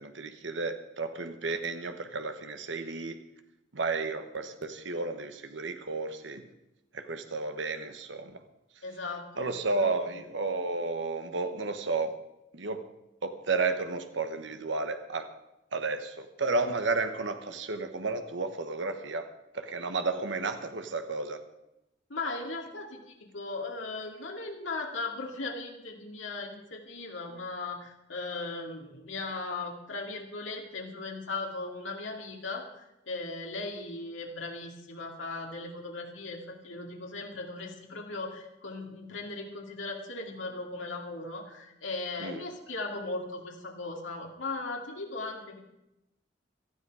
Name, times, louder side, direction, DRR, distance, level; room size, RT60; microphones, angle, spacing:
voice 1, 0.0-3.2 3.7-6.4 6.9-8.4 9.4-12.1 12.5-12.8 13.2-15.3 15.7-19.3 19.5-21.4 42.2-42.4, right 3 dB, 70° right, 8 dB, 1.2 m, -32 dB
voice 2, 8.8-9.9 22.1-45.6, left 3 dB, 85° left, 0 dB, 2.5 m, -38 dB
18.0 x 13.0 x 4.9 m, 0.91 s
head